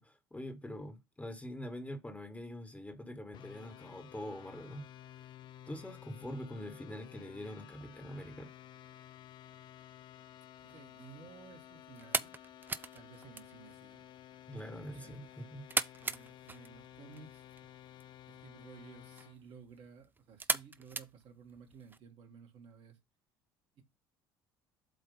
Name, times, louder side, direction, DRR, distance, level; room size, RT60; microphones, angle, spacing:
voice 1, 0.0-4.8 5.7-8.5 14.5-15.6, equal, 10° left, 1.6 m, -44 dB
sound 1, 3.3-19.4, left 12 dB, 40° left, 0.4 m, -54 dB
sound 2, 10.6-22.0, right 3 dB, 15° right, 0.6 m, -41 dB
voice 2, 10.6-12.3 12.9-14.1 14.6-15.2 15.9-17.5 18.3-23.0 23.8-23.9, right 6 dB, 55° right, 1.8 m, -55 dB
8.0 x 2.9 x 5.4 m
figure-of-eight pair, 60°, 12 cm